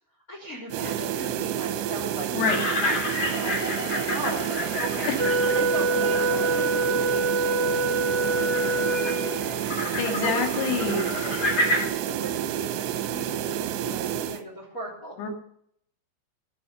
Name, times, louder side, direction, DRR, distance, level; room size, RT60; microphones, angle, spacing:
voice 1, 0.3-2.5 2.8-4.5 4.8-5.1 5.4-9.9 10.2-10.5 10.9-15.1, right 1 dB, 20° left, -3 dB, 3.6 m, -38 dB
sound 1, 0.7-14.4, right 10 dB, 75° right, 2.8 m, -30 dB
sound 2, 2.5-11.9, left 1 dB, 35° left, 3.4 m, -31 dB
Wind instrument woodwind instrument, 5.2-9.6, right 2 dB, 35° right, 1.3 m, -25 dB
voice 2, 10.0-11.1 15.2-15.3, left 5 dB, 65° left, 3 dB, 4.2 m, -26 dB
14.0 x 9.3 x 6.9 m, 0.67 s
omnidirectional pair, 5.4 m